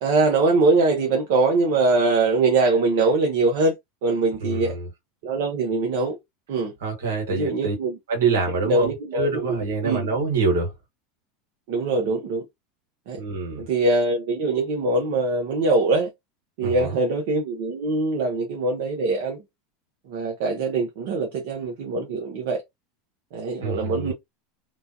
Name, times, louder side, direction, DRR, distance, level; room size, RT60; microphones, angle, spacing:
voice 1, 0.0-3.7 4.0-4.7 5.2-6.2 6.5-6.7 7.3-8.4 8.6-10.1 11.7-12.4 13.1-13.2 13.6-16.1 16.6-19.4 20.1-22.6 23.3-24.1, right 3 dB, 70° right, 0.8 m, -23 dB
voice 2, 4.4-4.9 6.8-7.8 8.1-10.7 13.2-13.6 16.6-17.0 23.6-24.1, right 4 dB, 85° right, 1.5 m, -26 dB
3.1 x 2.2 x 2.6 m
hypercardioid pair, 105°, 0 cm